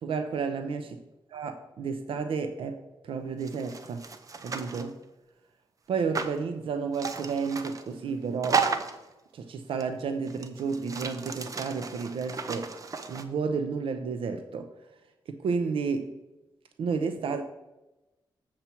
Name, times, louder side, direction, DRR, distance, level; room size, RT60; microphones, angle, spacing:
voice 1, 0.0-1.0 1.3-4.0 4.4-5.0 5.9-8.6 9.3-12.7 13.1-14.7 15.3-16.1 16.8-17.4, right 5 dB, 80° right, 0.6 m, -31 dB
sound 1, 3.4-4.9 6.1-6.4 6.9-7.9 8.4-9.1 9.8-9.9 10.3-13.2, right 5 dB, 40° right, 0.6 m, -33 dB
7.3 x 7.0 x 4.4 m
wide cardioid pair, 140°, 9 cm